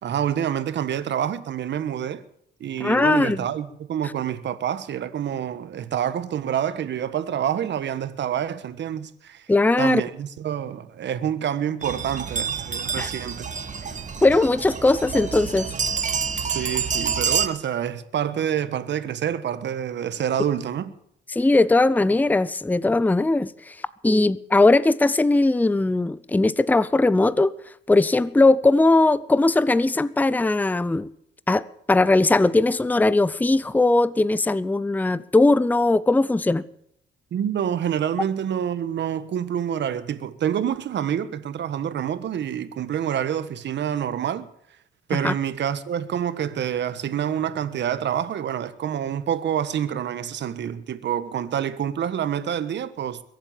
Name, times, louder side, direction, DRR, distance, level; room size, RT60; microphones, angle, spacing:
voice 1, 0.0-2.2 2.6-9.5 9.8-13.5 16.5-20.9 37.3-44.5 45.1-53.2, right 9 dB, 65° right, 1.4 m, -27 dB
voice 2, 2.8-3.5 9.5-10.0 13.0-13.1 14.2-15.7 21.3-23.8 24.0-27.5 27.9-31.1 31.5-36.6 45.1-45.3, left 2 dB, 10° left, 0.6 m, -19 dB
sound 1, 11.8-17.5, right 6 dB, 40° right, 1.7 m, -28 dB
22.5 x 8.1 x 7.5 m
cardioid pair, 90°, 20 cm